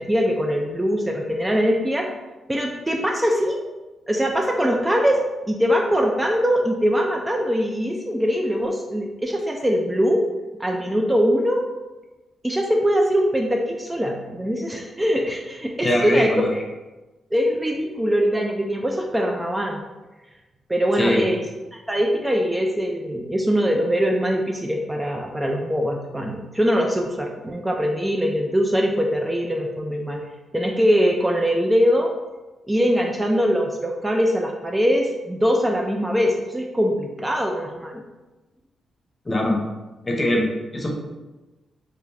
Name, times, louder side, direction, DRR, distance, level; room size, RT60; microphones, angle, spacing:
voice 1, 0.0-2.1 2.5-3.6 4.1-5.2 5.5-10.2 10.6-11.7 12.4-16.3 17.3-19.8 20.7-21.4 21.7-30.3 30.5-32.1 32.7-38.0, equal, 15° right, 0 dB, 0.3 m, -22 dB
voice 2, 15.8-16.6 21.0-21.2 39.2-39.6 40.0-40.9, left 1 dB, 30° left, -1 dB, 0.7 m, -22 dB
2.3 x 2.1 x 3.2 m, 1.1 s
supercardioid pair, 55°, 0 cm